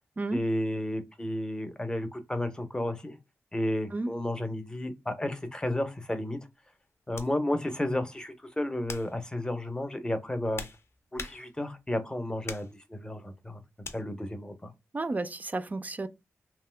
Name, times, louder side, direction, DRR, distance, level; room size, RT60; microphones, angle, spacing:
voice 1, 0.3-3.2 3.5-6.4 7.1-10.6 11.1-13.6 13.9-14.7, left 1 dB, 15° left, 0.6 m, -32 dB
sound 1, 7.1-7.4 8.0-8.3 8.8-9.2 10.1-11.8 12.4-12.8 13.8-14.0, left 3 dB, 55° left, 0.6 m, -42 dB
voice 2, 14.9-16.1, right 2 dB, 30° right, 0.3 m, -32 dB
2.8 x 2.2 x 3.2 m
wide cardioid pair, 75°, 5 cm